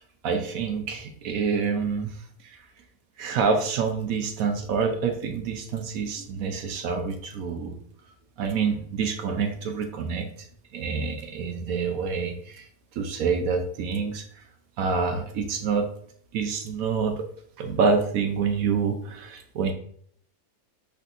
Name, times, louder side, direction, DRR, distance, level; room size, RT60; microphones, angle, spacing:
voice 1, 0.0-2.2 2.4-2.6 3.2-7.7 8.4-10.3 10.7-12.7 12.9-14.4 14.8-15.9 16.3-17.3 17.6-19.7, right 5 dB, 70° right, 5 dB, 1.0 m, -27 dB
5.7 x 3.3 x 2.6 m, 0.63 s
omnidirectional pair, 1.7 m